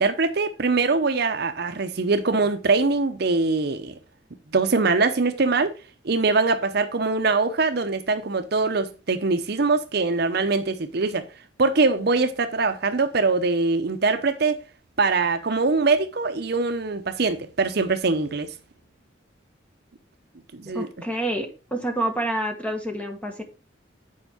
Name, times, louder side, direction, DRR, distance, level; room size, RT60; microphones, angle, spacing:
voice 1, 0.0-3.9 4.5-5.7 6.0-11.3 11.6-14.6 15.0-18.5 20.5-20.9, right 3 dB, 55° right, 0.7 m, -23 dB
voice 2, 20.7-23.4, right 1 dB, 5° left, 1.4 m, -28 dB
8.7 x 4.5 x 4.9 m
head